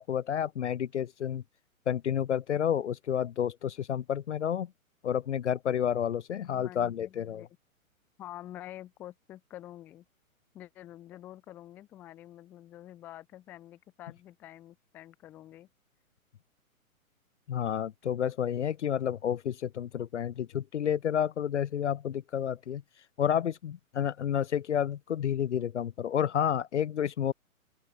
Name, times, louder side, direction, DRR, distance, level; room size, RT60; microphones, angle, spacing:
voice 1, 0.0-1.4 1.9-4.7 5.0-7.4 17.5-22.8 23.2-27.3, left 9 dB, 55° left, 0.5 m, -30 dB
voice 2, 6.5-7.5 8.2-10.0 10.5-15.7, left 13 dB, 5° left, 0.5 m, -47 dB
open air
figure-of-eight pair, 120°, 42 cm